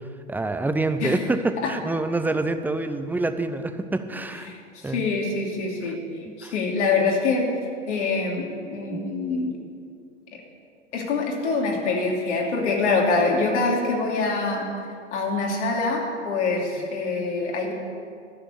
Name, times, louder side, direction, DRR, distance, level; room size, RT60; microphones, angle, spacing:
voice 1, 0.3-4.5 4.8-5.1 6.3-6.5 8.9-9.0, right 2 dB, 5° right, 9 dB, 0.6 m, -26 dB
voice 2, 4.5-6.0 6.4-7.5 7.9-9.6 10.3-10.4 10.9-14.7 15.1-17.7, left 3 dB, 70° left, 0 dB, 2.9 m, -25 dB
12.0 x 6.9 x 9.8 m, 2.3 s
hypercardioid pair, 100°, 36 cm